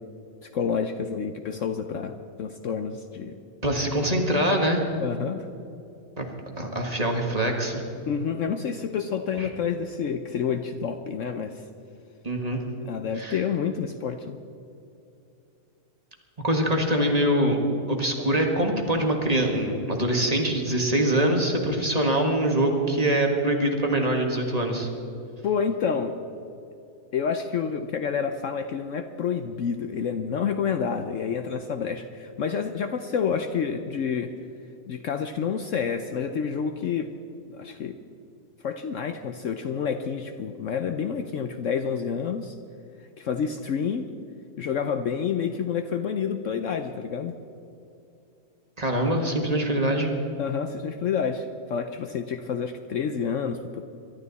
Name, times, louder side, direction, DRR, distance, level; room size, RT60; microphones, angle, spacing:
voice 1, 0.4-3.4 5.0-5.5 8.1-11.6 12.8-14.4 25.4-26.2 27.1-34.3 34.9-37.1 37.5-38.0 38.6-42.5 43.2-44.1 44.6-47.4 50.4-53.8, left 6 dB, 60° left, 8 dB, 0.9 m, -29 dB
voice 2, 3.6-4.8 6.2-6.3 6.6-7.8 9.4-9.5 12.2-12.6 13.2-13.4 16.4-17.6 17.9-24.9 48.8-50.1, right 1 dB, 25° right, 1 dB, 1.8 m, -24 dB
23.0 x 12.5 x 4.1 m, 2.7 s
omnidirectional pair, 1.6 m